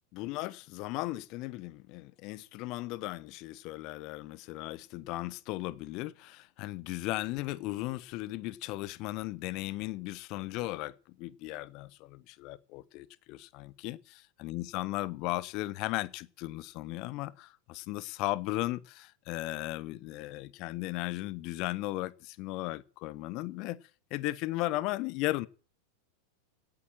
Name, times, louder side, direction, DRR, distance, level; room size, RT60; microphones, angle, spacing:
voice 1, 0.2-23.8 24.1-25.5, left 18 dB, 40° left, 0.8 m, -36 dB
17.5 x 8.8 x 7.5 m
figure-of-eight pair, 90°, 0 cm